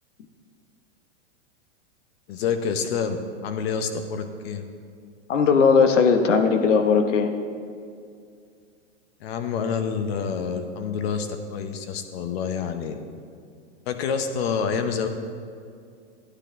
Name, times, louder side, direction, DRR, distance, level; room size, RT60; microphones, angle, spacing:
voice 1, 2.3-3.2 3.4-4.6 9.2-13.0 13.9-15.1, left 6 dB, 55° left, 7 dB, 1.0 m, -27 dB
voice 2, 5.3-7.4, left 5 dB, 80° left, 6 dB, 1.1 m, -18 dB
11.5 x 9.8 x 3.7 m, 2.3 s
hypercardioid pair, 125°, 36 cm